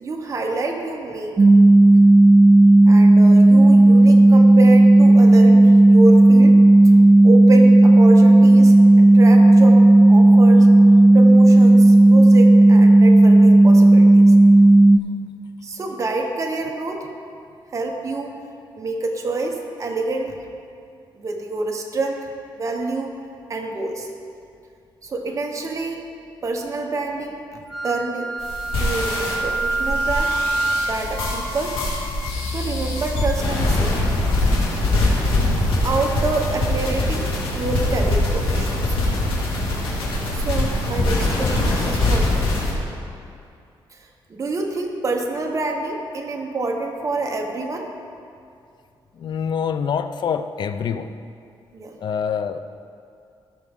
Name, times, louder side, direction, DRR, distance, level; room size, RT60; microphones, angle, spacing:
voice 1, 0.0-1.4 2.9-6.6 7.2-10.7 11.1-14.3 15.6-17.1 17.7-18.4 18.8-20.4 21.1-22.3 22.6-23.2 23.5-24.1 25.0-26.0 26.4-28.3 28.7-30.3 30.8-31.8 32.4-34.0 35.8-39.0 40.3-42.5 43.9-47.9 51.7-52.0, right 3 dB, 35° right, 1 dB, 1.1 m, -27 dB
sound 1, 1.4-15.0, right 2 dB, 20° right, 0.5 m, -11 dB
Wind instrument woodwind instrument, 27.7-31.1, right 2 dB, ahead, 0.9 m, -25 dB
sound 2, 28.4-42.7, left 2 dB, 85° left, 2.5 m, -22 dB
voice 2, 49.2-51.1 52.0-52.6, left 7 dB, 60° left, 10 dB, 0.5 m, -25 dB
16.5 x 6.1 x 3.7 m, 2.4 s
cardioid pair, 115°, 9 cm